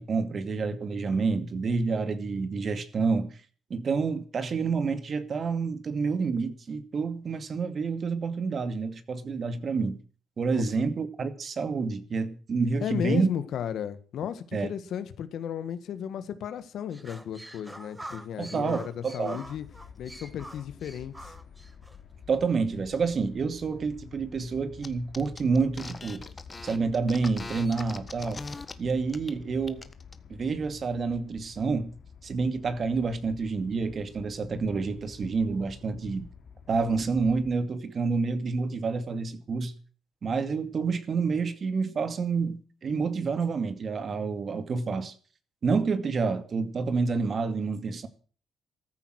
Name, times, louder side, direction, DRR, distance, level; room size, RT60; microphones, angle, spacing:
voice 1, 0.0-3.3 3.7-10.0 10.4-13.3 14.5-14.7 18.4-19.4 22.3-26.2 26.6-28.4 28.8-29.8 30.3-31.9 32.2-36.3 36.7-39.7 40.2-45.1 45.6-48.1, right 4 dB, 45° right, 2.3 m, -28 dB
voice 2, 12.8-19.7 20.0-21.3, left 9 dB, 70° left, 1.7 m, -34 dB
sound 1, 16.9-22.0, right 1 dB, 10° right, 1.7 m, -45 dB
sound 2, 19.4-37.6, left 6 dB, 55° left, 2.9 m, -49 dB
sound 3, 24.8-24.9 25.1-28.7 29.1-29.3 29.6-30.1, left 3 dB, 25° left, 1.6 m, -41 dB
14.5 x 13.5 x 6.5 m
cardioid pair, 90°, 0 cm